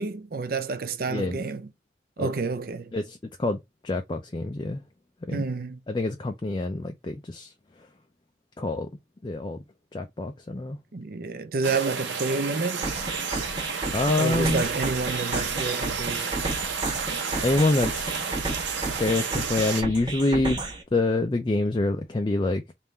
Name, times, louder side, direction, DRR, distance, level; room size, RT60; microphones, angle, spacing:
voice 1, 0.0-1.7 2.2-2.9 5.3-5.8 10.9-12.9 14.2-16.4, right 4 dB, 50° right, 0.5 m, -29 dB
voice 2, 1.1-1.4 2.2-2.3 2.9-4.8 5.3-5.5 5.9-7.5 8.6-8.9 9.2-9.6 9.9-10.8 13.9-14.6 17.4-18.3 19.0-20.6 20.9-22.7, left 2 dB, 25° left, 0.4 m, -26 dB
sound 1, 11.6-19.8, right 5 dB, 85° right, 0.9 m, -31 dB
sound 2, 12.8-20.8, right 2 dB, 25° right, 0.9 m, -32 dB
3.6 x 2.5 x 4.2 m
head